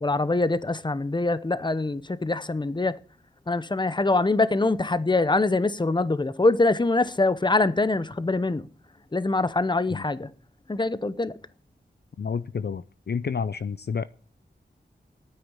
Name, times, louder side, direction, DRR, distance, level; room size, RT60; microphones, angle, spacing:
voice 1, 0.0-3.0 3.5-8.7 9.1-10.3 10.7-11.3, left 2 dB, 25° left, 0.7 m, -24 dB
voice 2, 12.2-14.0, left 6 dB, 60° left, 0.5 m, -30 dB
9.2 x 9.1 x 8.0 m
wide cardioid pair, 75°, 19 cm